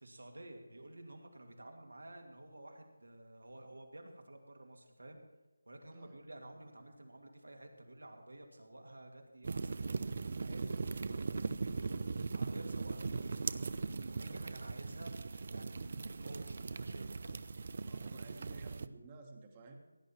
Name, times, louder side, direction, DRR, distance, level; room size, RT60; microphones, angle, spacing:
voice 1, 0.0-5.2 5.7-10.8 11.1-17.3, right 1 dB, 80° right, 3 dB, 2.4 m, -52 dB
sound 1, 9.4-18.9, right 4 dB, 45° right, 0.5 m, -39 dB
voice 2, 17.8-19.8, right 3 dB, 25° right, 4 dB, 1.4 m, -53 dB
16.0 x 9.1 x 4.5 m, 1.1 s
figure-of-eight pair, 160°, 0 cm